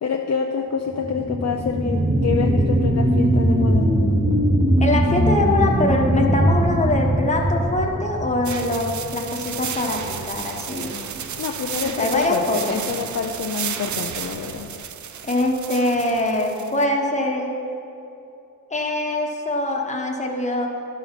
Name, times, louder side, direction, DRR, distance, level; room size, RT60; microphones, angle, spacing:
voice 1, 0.0-3.9 11.4-14.7, left 6 dB, 50° left, 2 dB, 0.5 m, -27 dB
sound 1, 0.9-9.9 10.4-10.5, right 1 dB, 15° right, 0.8 m, -21 dB
voice 2, 4.8-11.0 11.8-12.8 15.2-17.6 18.7-20.7, left 2 dB, 20° left, 0 dB, 1.0 m, -23 dB
sound 2, 8.4-16.8, right 8 dB, 55° right, 0.5 m, -33 dB
12.0 x 5.6 x 5.8 m, 2.8 s
wide cardioid pair, 175°, 35 cm